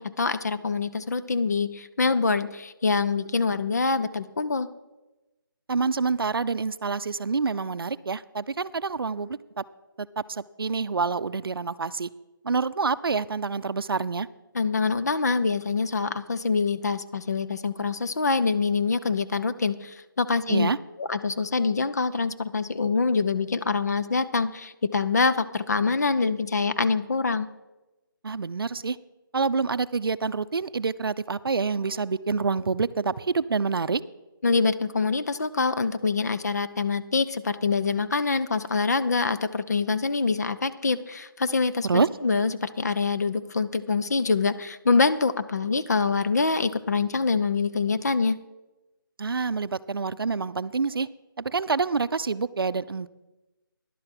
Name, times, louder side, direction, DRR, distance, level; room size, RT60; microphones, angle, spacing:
voice 1, 0.0-4.7 14.5-20.7 21.0-27.5 34.4-48.4, left 4 dB, 45° left, 12 dB, 0.6 m, -25 dB
voice 2, 5.7-9.6 10.0-12.1 12.4-14.3 20.5-20.8 28.2-29.0 29.3-34.0 41.8-42.1 49.2-51.1 51.4-53.1, right 4 dB, 80° right, 15 dB, 0.5 m, -27 dB
11.0 x 7.7 x 5.9 m, 1.1 s
figure-of-eight pair, 170°, 12 cm